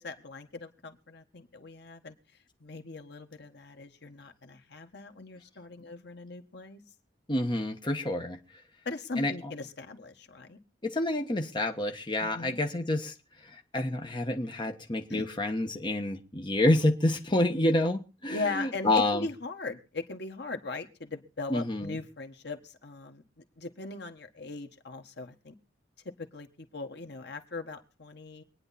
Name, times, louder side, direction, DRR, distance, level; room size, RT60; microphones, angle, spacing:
voice 1, 0.0-2.2 2.6-6.8 8.8-10.6 12.2-12.6 15.1-15.2 18.3-25.5 26.2-28.4, left 3 dB, 65° left, 1.6 m, -39 dB
voice 2, 7.3-8.4 9.2-9.3 10.8-13.1 13.4-19.3 21.5-22.0, left 1 dB, 25° left, 1.3 m, -28 dB
24.0 x 9.9 x 4.2 m
head